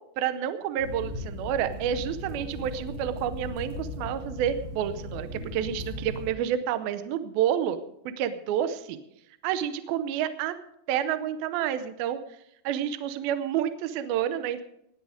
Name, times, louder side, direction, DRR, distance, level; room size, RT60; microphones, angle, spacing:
voice 1, 0.2-7.8 8.2-9.0 9.4-10.5 10.9-12.2 12.6-14.6, right 10 dB, 75° right, 11 dB, 2.3 m, -29 dB
sound 1, 0.8-6.3, left 1 dB, 50° right, 5.9 m, -37 dB
18.5 x 9.9 x 5.0 m, 0.78 s
omnidirectional pair, 5.1 m